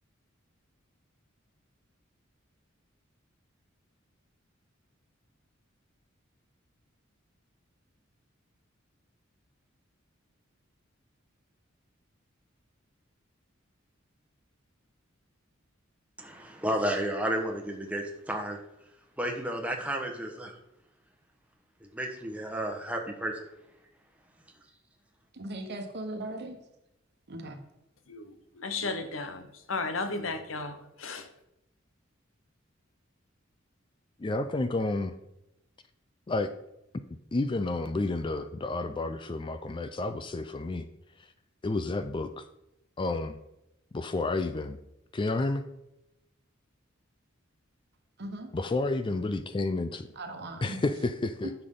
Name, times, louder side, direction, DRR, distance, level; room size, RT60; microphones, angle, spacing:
voice 1, 16.2-18.6 19.2-20.5 21.8-23.5, right 1 dB, 5° right, 1.2 m, -32 dB
voice 2, 25.3-26.6 27.3-27.6 48.2-48.5 50.1-50.8, right 1 dB, 55° right, 1.2 m, -38 dB
voice 3, 28.1-31.3, left 3 dB, 75° left, 1.0 m, -35 dB
voice 4, 34.2-35.1 36.3-36.5 37.3-40.9 41.2-41.3 41.6-42.5 43.0-43.4 43.9-44.8 45.1-45.7 48.5-50.1 50.6-51.5, left 2 dB, 25° left, 0.4 m, -30 dB
10.5 x 6.9 x 3.8 m
head